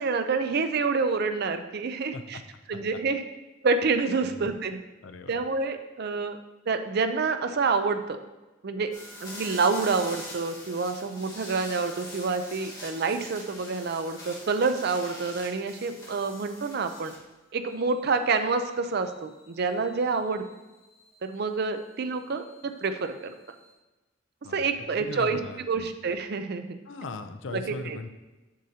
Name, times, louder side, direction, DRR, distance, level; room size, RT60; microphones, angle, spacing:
voice 1, 0.0-2.4 2.7-3.2 3.6-4.8 5.3-6.4 6.7-8.2 8.6-8.9 9.2-17.1 17.5-20.4 21.2-23.3 24.5-25.4 25.7-26.8 27.5-28.0, right 4 dB, 55° right, 8 dB, 0.5 m, -28 dB
voice 2, 5.0-5.3 6.1-6.2 24.4-24.6 24.9-25.9 26.9-28.1, left 3 dB, 70° left, 8 dB, 0.5 m, -39 dB
sound 1, 8.9-17.3 17.7-23.7, left 1 dB, 20° left, 1.9 m, -46 dB
7.5 x 6.4 x 2.8 m, 1.1 s
head